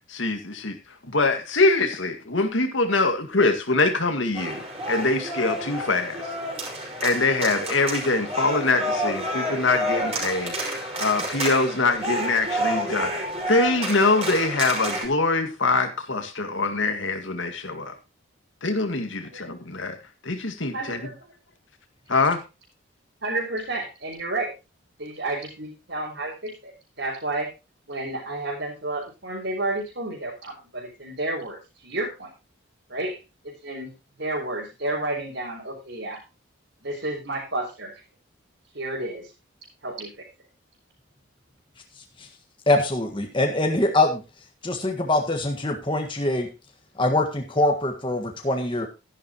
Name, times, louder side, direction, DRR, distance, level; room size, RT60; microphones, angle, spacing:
voice 1, 0.1-0.8 1.1-6.3 7.0-13.1 13.5-17.9 18.6-20.0 20.2-21.1 22.1-22.4, left 3 dB, 65° left, 7 dB, 2.0 m, -24 dB
sound 1, 4.4-15.1, right 1 dB, 30° right, 5.0 m, -29 dB
voice 2, 20.7-21.3 23.2-24.5 25.0-27.5 27.9-32.3 32.9-33.2 33.4-33.9 34.2-36.2 36.8-38.0 38.7-39.3 39.8-40.1, right 2 dB, 60° right, -4 dB, 4.3 m, -31 dB
voice 3, 42.7-44.2 44.6-46.5 47.0-48.9, left 2 dB, 25° left, 3 dB, 1.6 m, -23 dB
13.0 x 11.0 x 3.0 m, 0.27 s
head